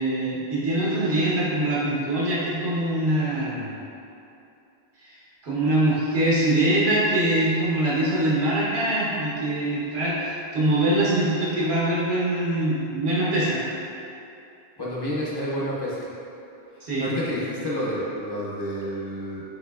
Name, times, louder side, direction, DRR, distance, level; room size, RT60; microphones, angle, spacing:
voice 1, 0.0-3.7 5.0-13.6 16.8-17.1, right 1 dB, 85° right, -8 dB, 1.3 m, -23 dB
voice 2, 14.8-16.0 16.8-19.4, equal, 30° left, -8 dB, 0.6 m, -29 dB
6.2 x 2.8 x 2.3 m, 2.7 s
omnidirectional pair, 1.1 m